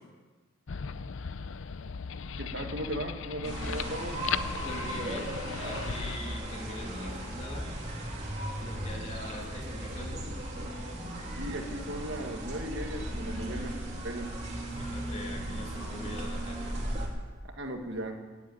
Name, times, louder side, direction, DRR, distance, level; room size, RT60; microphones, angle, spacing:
sound 1, 0.7-6.2, left 6 dB, 65° left, 0.5 m, -37 dB
voice 1, 2.4-4.2 11.4-14.3 17.5-18.2, right 1 dB, 55° right, 4 dB, 1.7 m, -37 dB
sound 2, 3.4-17.1, right 1 dB, 35° right, 3.1 m, -36 dB
voice 2, 4.6-7.8 8.6-10.4 14.7-16.8, left 1 dB, 30° left, 1 dB, 2.6 m, -43 dB
17.5 x 8.4 x 9.2 m, 1.3 s
head